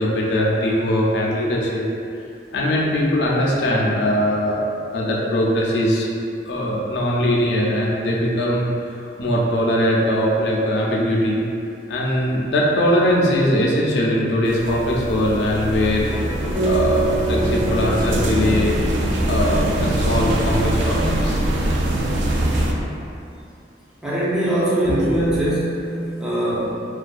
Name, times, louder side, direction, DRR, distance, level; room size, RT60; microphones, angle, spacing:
voice 1, 0.0-1.9 2.5-4.6 4.9-6.1 6.5-11.4 11.9-16.4 16.7-18.8 19.3-21.4 24.9-25.1, equal, 70° left, -3 dB, 0.4 m, -21 dB
sound 1, 14.5-22.7, right 1 dB, 85° right, 0.3 m, -22 dB
Electric guitar, 15.4-23.1, left 1 dB, 60° right, 1.1 m, -39 dB
sound 2, 16.5-20.8, right 2 dB, 35° right, 1.0 m, -26 dB
voice 2, 24.0-26.7, right 1 dB, 5° right, -8 dB, 0.4 m, -22 dB
2.4 x 2.2 x 2.4 m, 2.5 s
head